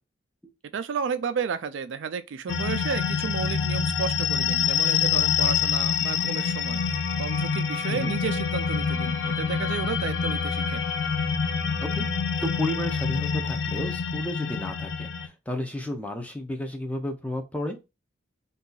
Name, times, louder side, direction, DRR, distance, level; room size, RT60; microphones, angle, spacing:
voice 1, 0.7-6.8 7.2-10.8, right 6 dB, 85° right, 0.4 m, -32 dB
sound 1, 2.5-15.3, left 6 dB, 65° left, 0.4 m, -26 dB
voice 2, 12.4-17.8, left 1 dB, 5° left, 0.5 m, -32 dB
2.7 x 2.4 x 3.8 m
head